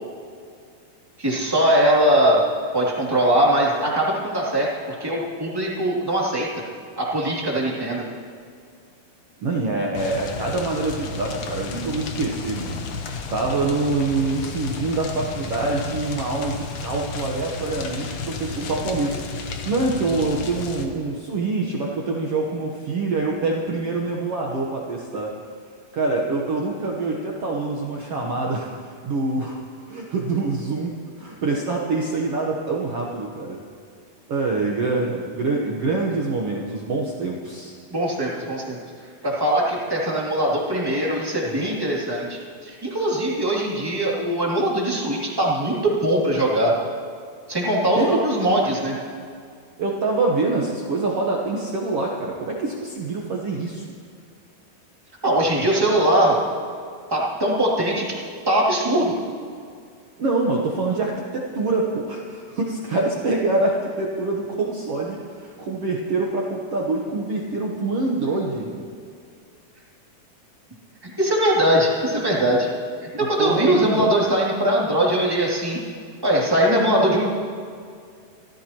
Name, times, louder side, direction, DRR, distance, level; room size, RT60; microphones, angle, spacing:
voice 1, 1.2-2.4 2.7-6.5 7.0-8.0 37.9-38.8 39.2-46.7 47.5-48.9 55.2-56.4 57.1-58.1 58.5-59.1 71.2-72.7 73.1-75.8 76.2-77.3, right 1 dB, 5° right, -5 dB, 2.1 m, -21 dB
voice 2, 9.4-12.8 13.3-25.4 25.9-29.6 29.9-33.6 34.3-37.7 47.9-48.2 49.8-53.8 60.2-68.9 73.2-74.1, right 3 dB, 75° right, -2 dB, 1.3 m, -25 dB
sound 1, 9.9-20.9, left 4 dB, 65° left, 1.7 m, -32 dB
26.0 x 14.5 x 3.0 m, 2.3 s
omnidirectional pair, 4.4 m